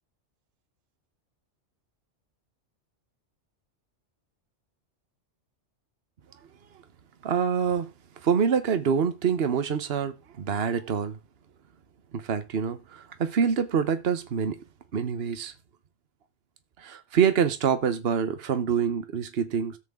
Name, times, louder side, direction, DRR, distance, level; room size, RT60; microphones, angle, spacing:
voice 1, 7.2-7.9 8.2-11.2 12.1-14.6 14.9-15.5 16.8-19.8, right 7 dB, 60° right, 1.2 m, -26 dB
13.0 x 8.1 x 3.7 m
omnidirectional pair, 1.2 m